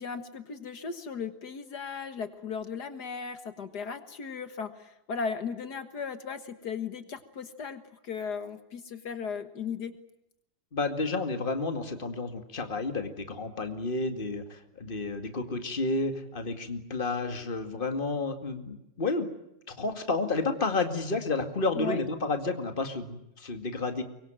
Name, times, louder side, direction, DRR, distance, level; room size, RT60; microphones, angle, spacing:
voice 1, 0.0-10.0 21.8-22.0, left 6 dB, 75° left, 9 dB, 2.1 m, -36 dB
voice 2, 10.7-19.3 19.7-24.0, left 3 dB, 30° left, 7 dB, 2.3 m, -31 dB
24.0 x 23.5 x 9.0 m, 0.85 s
omnidirectional pair, 1.8 m